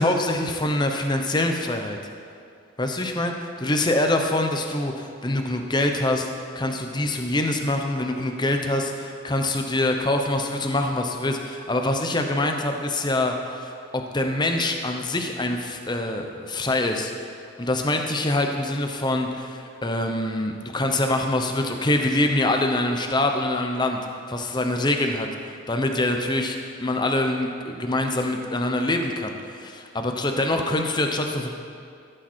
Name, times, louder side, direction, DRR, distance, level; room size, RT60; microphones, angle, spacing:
voice 1, 0.0-2.0 2.8-6.3 6.5-17.1 17.6-24.0 24.3-25.3 25.7-31.5, left 1 dB, 20° left, 4 dB, 0.9 m, -25 dB
16.0 x 9.0 x 4.5 m, 2.4 s
head